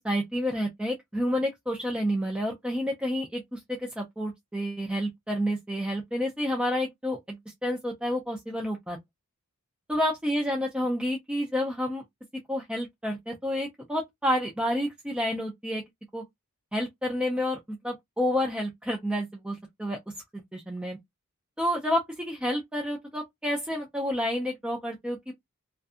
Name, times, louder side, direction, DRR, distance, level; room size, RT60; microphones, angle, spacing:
voice 1, 0.0-9.0 9.9-12.0 12.5-15.8 16.1-16.2 16.7-20.0 20.3-21.0 21.6-25.3, equal, 5° right, 0.3 m, -29 dB
2.6 x 2.4 x 2.3 m
head